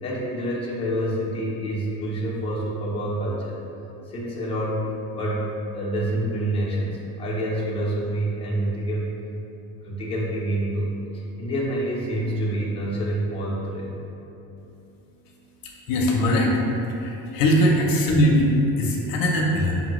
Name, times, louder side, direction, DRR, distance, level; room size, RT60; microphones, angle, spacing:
voice 1, 0.0-3.6 4.1-9.2 9.8-14.0 17.4-17.5, right 1 dB, 15° left, -6 dB, 0.7 m, -27 dB
voice 2, 15.9-16.6 17.0-19.8, equal, 60° left, -1 dB, 0.7 m, -20 dB
5.4 x 2.6 x 3.0 m, 2.9 s
cardioid pair, 135°, 38 cm